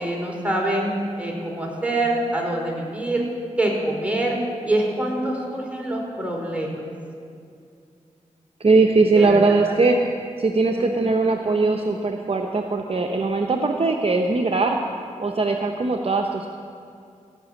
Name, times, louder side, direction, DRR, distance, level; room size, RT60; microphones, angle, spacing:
voice 1, 0.0-3.2 3.6-4.4 4.7-6.8 9.1-9.4 9.7-9.8 10.8-10.9, right 1 dB, 10° right, -2 dB, 3.6 m, -25 dB
voice 2, 8.6-10.0 10.4-14.8 15.2-16.5, right 3 dB, 45° right, 2 dB, 0.8 m, -20 dB
16.5 x 5.9 x 7.3 m, 2.4 s
cardioid pair, 40°, 13 cm